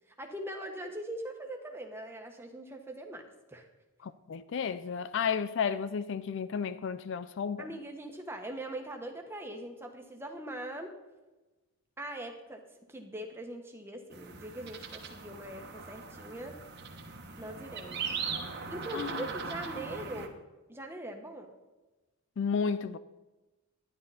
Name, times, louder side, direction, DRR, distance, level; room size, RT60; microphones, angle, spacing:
voice 1, 0.1-3.7 7.6-11.0 12.0-12.6 12.9-16.6 17.4-18.1 18.7-20.4 20.7-21.5, right 1 dB, 10° right, 1.2 m, -41 dB
voice 2, 4.0-7.7 18.9-19.3 22.4-23.0, left 6 dB, 55° left, 0.4 m, -32 dB
sound 1, 14.1-20.3, right 5 dB, 50° right, 1.2 m, -40 dB
12.5 x 10.5 x 4.1 m
head